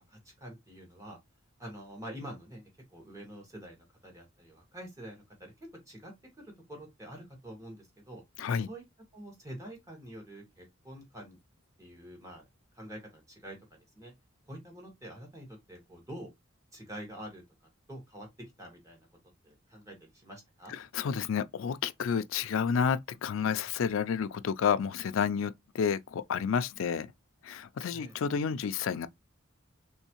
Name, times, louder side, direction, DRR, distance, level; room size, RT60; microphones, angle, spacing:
voice 1, 0.1-1.2 1.6-8.2 8.7-8.8 9.1-11.4 11.8-12.4 12.7-14.1 14.5-16.3 16.7-17.4 17.9-19.1 19.4-20.7 27.9-28.2, equal, 15° right, 1.6 m, -47 dB
voice 2, 8.4-8.7 20.7-27.1 27.4-29.1, left 7 dB, 70° left, 0.4 m, -30 dB
3.5 x 3.1 x 2.9 m
head